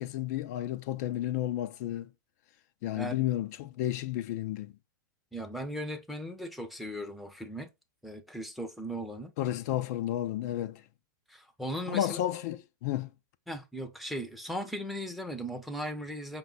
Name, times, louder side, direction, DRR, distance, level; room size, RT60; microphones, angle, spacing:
voice 1, 0.0-2.1 2.8-4.7 9.4-10.8 11.9-13.1, left 13 dB, 55° left, 0.4 m, -32 dB
voice 2, 5.3-7.7 8.0-9.3 11.3-12.2 13.5-16.4, equal, ahead, 0.7 m, -37 dB
5.6 x 2.2 x 3.9 m
hypercardioid pair, 125°, 11 cm